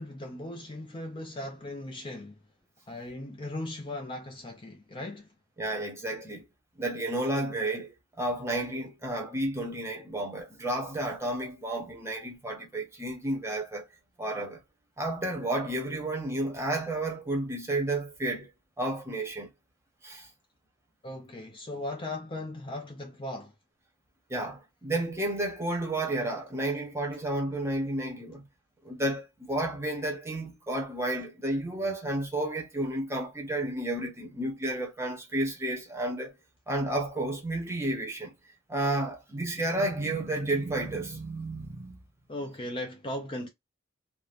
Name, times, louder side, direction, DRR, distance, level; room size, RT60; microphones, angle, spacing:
voice 1, 0.0-2.3 2.9-5.3 21.0-23.5 42.3-43.5, left 1 dB, 25° left, 0.5 m, -38 dB
voice 2, 5.6-6.4 6.8-13.9 14.2-14.6 15.0-18.5 18.8-19.5 20.0-20.3 24.3-28.4 28.8-36.4 36.7-38.4 38.7-42.0, right 1 dB, 15° right, 0.7 m, -31 dB
2.5 x 2.1 x 3.2 m
head